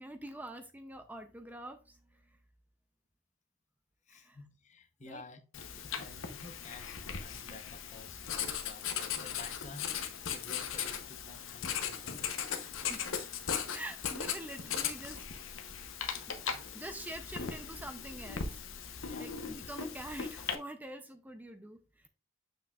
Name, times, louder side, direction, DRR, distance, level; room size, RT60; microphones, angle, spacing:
voice 1, 0.0-2.4 4.1-4.4 5.0-5.2 12.9-13.1 13.7-15.3 16.7-18.6 18.9-22.1, right 1 dB, 10° right, 0.5 m, -46 dB
voice 2, 4.1-5.4 5.8-12.3 19.0-19.3, left 3 dB, 35° left, 0.8 m, -52 dB
Writing, 5.5-20.5, left 7 dB, 70° left, 0.8 m, -38 dB
7.1 x 6.0 x 2.3 m
head